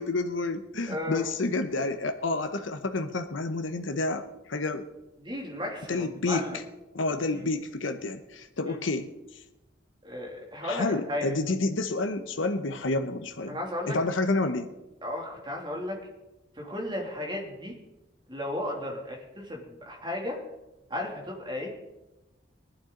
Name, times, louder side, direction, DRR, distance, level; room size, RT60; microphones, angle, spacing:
voice 1, 0.0-4.2 4.5-4.8 5.9-6.4 6.9-9.1 10.6-13.6 13.9-14.7, left 2 dB, 90° left, 7 dB, 0.9 m, -29 dB
voice 2, 0.9-1.3 5.2-6.6 7.3-7.4 8.6-8.8 10.0-11.3 13.5-14.0 15.0-16.0 16.6-17.7 18.3-20.4 20.9-21.7, left 1 dB, 25° right, 0 dB, 2.6 m, -34 dB
19.0 x 11.5 x 3.9 m, 0.99 s
head